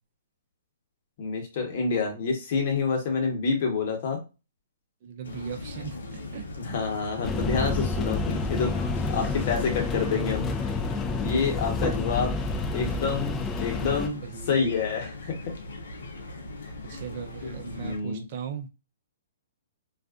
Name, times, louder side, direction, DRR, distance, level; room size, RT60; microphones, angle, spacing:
voice 1, 1.2-4.2 6.6-10.5 11.1-12.3 12.7-14.2 14.5-15.4 16.9-17.0 17.4-18.2, left 5 dB, 50° left, 1.1 m, -28 dB
voice 2, 5.0-6.5 14.2-14.6 16.8-18.7, right 8 dB, 45° right, 0.6 m, -38 dB
sound 1, 5.2-18.0, left 1 dB, 80° left, 0.7 m, -40 dB
sound 2, 7.2-14.1, left 3 dB, 20° left, 0.5 m, -29 dB
2.5 x 2.3 x 2.4 m
hypercardioid pair, 135°, 0 cm